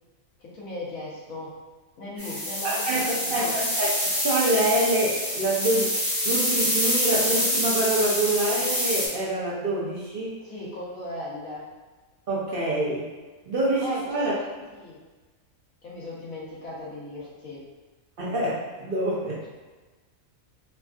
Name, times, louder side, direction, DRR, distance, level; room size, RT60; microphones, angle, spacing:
voice 1, 0.4-1.5 2.0-3.5 10.4-11.6 13.8-15.0 15.8-17.6 19.2-19.5, left 1 dB, 80° left, -6 dB, 1.2 m, -37 dB
sound 1, 2.2-9.1, equal, 20° left, 0.6 m, -26 dB
voice 2, 2.6-6.0 6.2-10.4 12.3-13.1 13.5-14.3 18.2-19.4, right 1 dB, 65° right, -6 dB, 0.5 m, -26 dB
3.3 x 2.3 x 2.3 m, 1.3 s
omnidirectional pair, 1.4 m